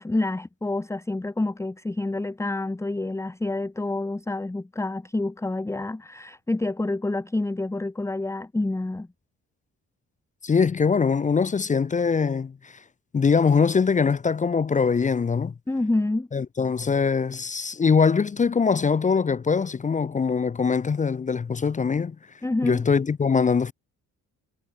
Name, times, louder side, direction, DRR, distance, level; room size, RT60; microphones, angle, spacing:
voice 1, 0.0-9.1 15.7-16.3 22.4-22.8, left 2 dB, 10° left, 1.0 m, -28 dB
voice 2, 10.4-12.8 13.1-15.5 16.3-22.2 22.6-23.7, left 5 dB, 25° left, 0.6 m, -22 dB
cardioid pair, 90°, 30 cm